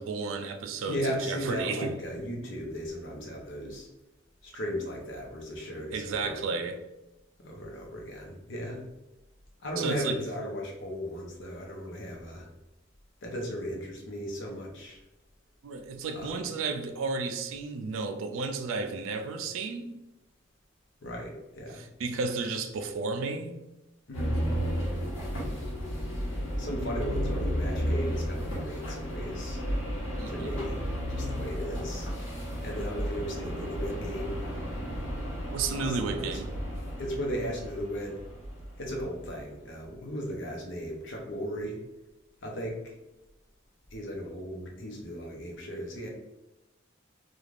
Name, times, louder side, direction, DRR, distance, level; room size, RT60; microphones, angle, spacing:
voice 1, 0.0-1.9 5.9-6.8 9.8-10.2 15.6-20.0 21.8-23.5 30.2-30.6 35.5-36.5, right 4 dB, 85° right, 6 dB, 0.4 m, -33 dB
voice 2, 0.9-3.9 4.4-6.5 7.4-8.8 9.6-12.5 13.2-15.0 16.1-16.5 21.0-21.8 24.1-24.6 26.6-29.6 30.3-30.8 31.1-32.1 32.6-34.4 35.7-36.4 37.0-38.2 38.8-41.8 42.4-42.8 43.9-46.1, equal, 65° left, 0 dB, 0.7 m, -36 dB
sound 1, 24.1-39.3, equal, 85° left, 1.1 m, -33 dB
3.2 x 2.4 x 2.4 m, 0.99 s
head